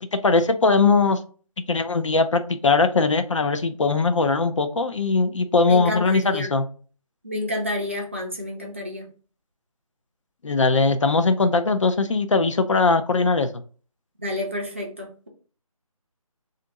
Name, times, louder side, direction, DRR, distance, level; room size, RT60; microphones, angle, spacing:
voice 1, 0.0-1.2 1.7-6.6 10.4-13.5, left 3 dB, 60° left, 8 dB, 0.4 m, -20 dB
voice 2, 5.7-6.5 7.2-9.1 14.2-15.3, left 1 dB, 20° right, -1 dB, 0.5 m, -29 dB
2.6 x 2.5 x 3.9 m, 0.39 s
figure-of-eight pair, 165°, 18 cm